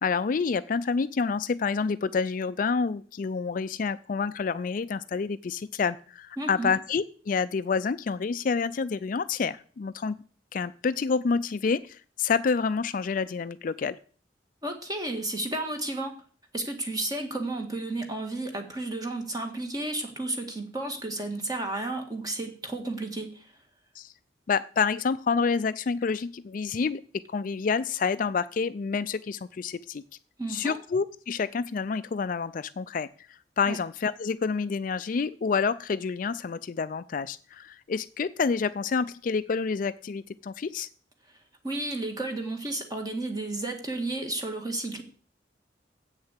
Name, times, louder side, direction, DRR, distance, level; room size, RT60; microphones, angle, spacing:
voice 1, 0.0-10.2 10.5-14.0 24.0-24.1 24.5-27.0 27.3-30.0 30.5-33.1 33.6-40.9, left 5 dB, 45° left, 13 dB, 0.4 m, -28 dB
voice 2, 6.4-6.7 14.6-16.1 16.5-23.5 30.4-30.8 33.7-33.8 41.6-45.0, right 2 dB, 20° right, 4 dB, 1.8 m, -32 dB
8.1 x 6.6 x 8.2 m, 0.43 s
head